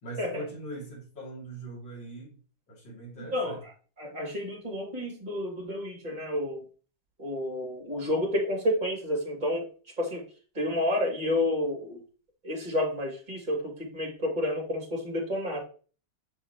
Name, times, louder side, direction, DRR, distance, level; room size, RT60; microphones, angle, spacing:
voice 1, 0.0-2.3 2.7-3.6, right 2 dB, 75° left, -6 dB, 3.4 m, -41 dB
voice 2, 3.2-3.7 4.0-6.6 7.2-9.7 10.0-10.2 10.5-12.0 12.4-15.6, left 1 dB, 25° right, -2 dB, 2.6 m, -30 dB
6.9 x 5.9 x 2.9 m, 0.38 s
omnidirectional pair, 2.0 m